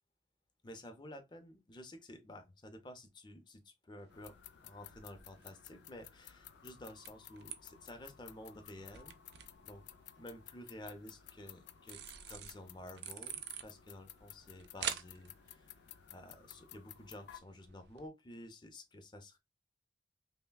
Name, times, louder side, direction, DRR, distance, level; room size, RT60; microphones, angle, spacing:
voice 1, 0.6-4.3 4.6-9.2 9.6-9.8 10.2-12.0 12.3-15.7 16.1-19.4, left 1 dB, 25° left, 0.5 m, -52 dB
sound 1, 4.0-18.1, right 9 dB, 70° right, 0.4 m, -50 dB
sound 2, 4.1-17.4, left 11 dB, 85° left, 0.3 m, -56 dB
5.4 x 2.2 x 2.2 m
head